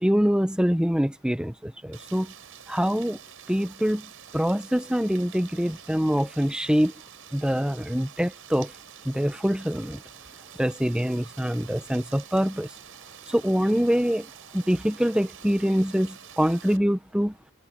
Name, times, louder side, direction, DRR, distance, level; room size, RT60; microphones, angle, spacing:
voice 1, 0.0-2.3 2.7-3.2 3.5-4.1 4.3-6.9 7.3-8.7 9.0-10.0 10.6-12.7 13.3-14.3 14.5-17.3, equal, 5° right, 0.9 m, -24 dB
Rain, 1.9-16.8, right 9 dB, 65° right, 6.0 m, -47 dB
head